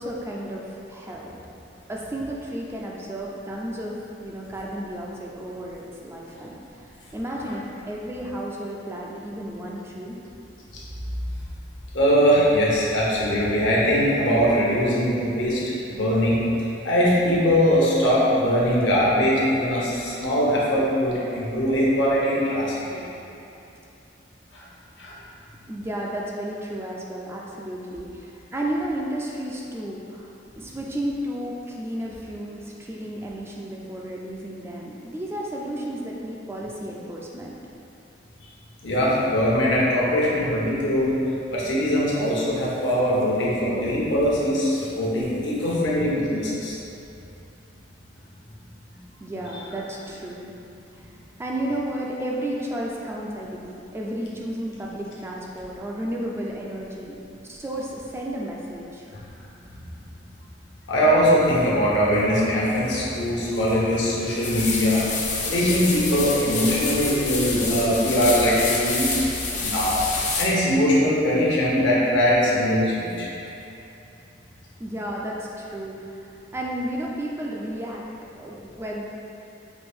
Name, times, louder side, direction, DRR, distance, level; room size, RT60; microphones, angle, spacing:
voice 1, 0.0-1.3 1.9-10.2 25.7-37.6 49.2-50.5 50.9-57.2 57.5-59.1 74.8-78.0 78.4-79.0, right 1 dB, 15° right, -3 dB, 0.3 m, -33 dB
voice 2, 11.9-16.4 16.8-23.1 24.5-24.6 25.0-25.2 38.8-41.1 41.5-46.8 60.9-65.0 65.4-69.1 69.6-70.0 70.4-73.3, equal, 70° left, -6 dB, 1.0 m, -21 dB
sound 1, 64.4-70.5, left 3 dB, 40° left, 0.5 m, -28 dB
5.1 x 2.5 x 3.5 m, 2.8 s
head